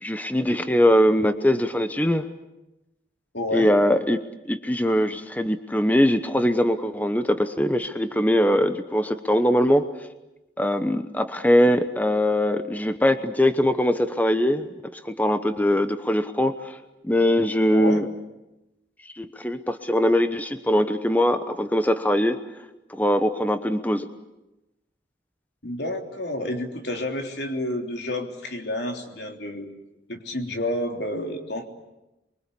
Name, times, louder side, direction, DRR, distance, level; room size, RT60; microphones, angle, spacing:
voice 1, 0.0-2.3 3.5-4.2 4.5-9.9 10.6-14.7 14.9-16.8 17.0-18.1 19.0-22.4 22.9-24.1, equal, 10° left, 9 dB, 1.0 m, -21 dB
voice 2, 3.3-3.7 17.7-18.0 25.6-29.7 30.1-31.6, left 1 dB, 65° left, 3 dB, 3.5 m, -30 dB
29.0 x 23.5 x 8.5 m, 0.97 s
head